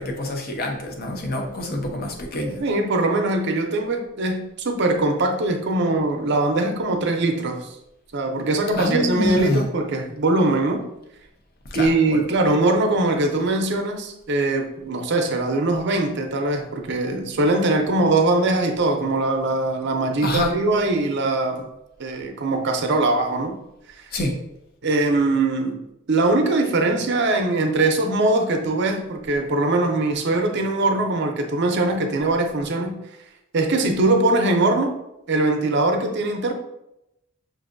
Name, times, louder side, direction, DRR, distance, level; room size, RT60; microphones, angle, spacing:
voice 1, 0.0-2.6 8.8-9.6 11.7-12.2 20.2-20.5 24.1-24.3, left 1 dB, 45° left, 2 dB, 0.6 m, -26 dB
voice 2, 2.6-7.7 8.1-10.8 11.7-21.7 22.0-23.6 24.0-24.1 24.8-25.8 26.1-33.0 33.5-34.9 35.3-36.5, right 2 dB, 55° right, 4 dB, 0.5 m, -21 dB
6.0 x 2.6 x 2.5 m, 0.87 s
head